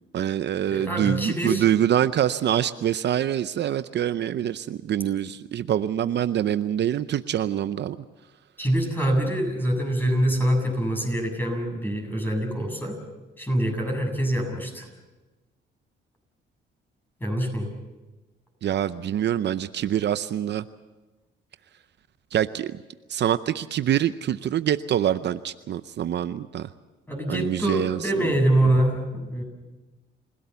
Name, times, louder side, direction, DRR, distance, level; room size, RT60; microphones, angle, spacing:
voice 1, 0.1-8.0 18.6-20.6 22.3-22.8 23.1-26.7 27.3-28.3, right 10 dB, 60° right, 13 dB, 0.7 m, -25 dB
voice 2, 0.7-1.6 8.6-13.0 13.4-14.9 17.2-17.7 27.1-29.4, right 1 dB, 10° left, 3 dB, 7.6 m, -25 dB
28.5 x 17.0 x 7.0 m, 1.2 s
cardioid pair, 90°, 20 cm